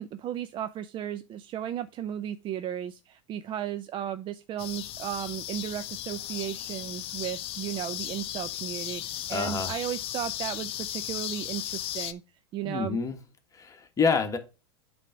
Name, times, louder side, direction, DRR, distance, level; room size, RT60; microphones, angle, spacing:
voice 1, 0.0-12.2 12.5-13.0, right 10 dB, 35° right, 0.5 m, -35 dB
sound 1, 4.6-12.1, left 13 dB, 40° left, 0.6 m, -36 dB
voice 2, 9.3-9.7 12.6-13.2 13.5-14.4, left 5 dB, 20° left, 1.4 m, -27 dB
8.3 x 3.4 x 5.0 m
hypercardioid pair, 100°, 15 cm